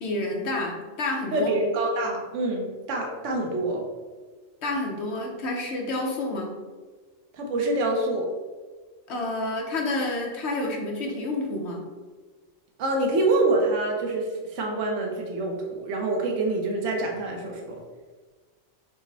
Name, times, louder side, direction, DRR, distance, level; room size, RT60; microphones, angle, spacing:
voice 1, 0.0-1.5 4.6-6.5 9.1-11.8, left 2 dB, 65° left, 1 dB, 1.1 m, -29 dB
voice 2, 1.3-3.8 7.3-8.3 12.8-14.3 14.5-17.6, right 2 dB, 80° right, 1 dB, 1.1 m, -26 dB
6.1 x 2.1 x 3.9 m, 1.4 s
omnidirectional pair, 1.2 m